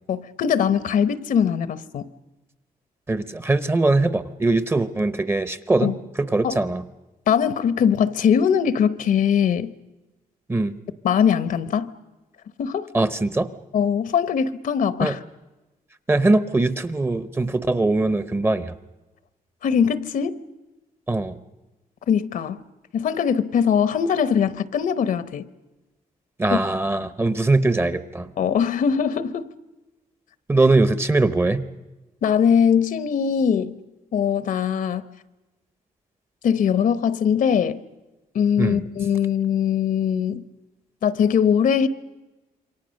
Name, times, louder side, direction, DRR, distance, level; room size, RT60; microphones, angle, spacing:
voice 1, 0.1-2.1 5.8-6.0 6.4-6.6 7.3-9.7 11.0-11.9 12.6-12.9 13.7-15.2 19.6-20.4 22.1-22.6 22.9-25.5 26.5-26.6 28.4-29.5 32.2-33.7 34.1-35.1 36.4-37.8 38.3-40.4 41.0-41.9, left 7 dB, 65° left, 0.9 m, -21 dB
voice 2, 3.1-5.9 6.2-6.8 10.5-10.8 12.9-13.5 15.0-15.2 16.1-18.7 21.1-21.3 26.4-28.3 30.5-31.6 38.6-38.8, right 2 dB, 15° right, 0.8 m, -21 dB
27.5 x 24.0 x 6.4 m
cardioid pair, 145°, 15 cm